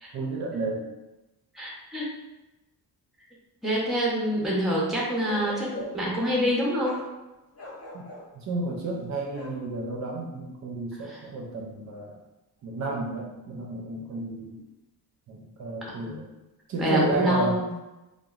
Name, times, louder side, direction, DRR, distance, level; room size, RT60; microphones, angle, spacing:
voice 1, 0.1-0.9 7.9-8.0 8.3-12.2 12.6-14.6 15.3-16.3 16.7-17.8, right 2 dB, 50° right, -1 dB, 0.5 m, -32 dB
voice 2, 1.5-2.1 3.6-7.0 11.0-11.2 15.9-16.2 16.8-17.6, equal, ahead, -4 dB, 0.5 m, -26 dB
Bark, 5.2-6.1 6.8-7.1 7.5-8.3 9.3-9.6, left 2 dB, 40° left, 0.6 m, -40 dB
2.9 x 2.1 x 2.3 m, 1.0 s
cardioid pair, 130°, 38 cm